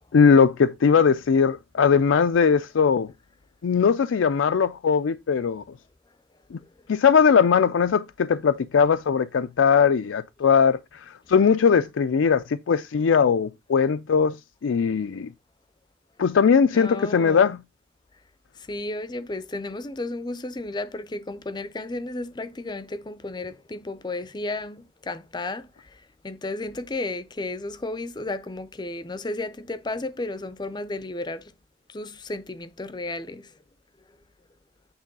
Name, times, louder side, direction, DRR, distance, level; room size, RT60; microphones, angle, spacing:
voice 1, 0.1-3.1 3.6-5.6 6.5-6.6 6.9-14.4 14.6-15.3 16.2-17.6, left 6 dB, 85° left, 0.4 m, -20 dB
voice 2, 16.7-17.6 18.7-25.9 26.2-31.5 31.9-33.5, left 2 dB, 20° left, 0.5 m, -33 dB
8.9 x 3.1 x 5.3 m
head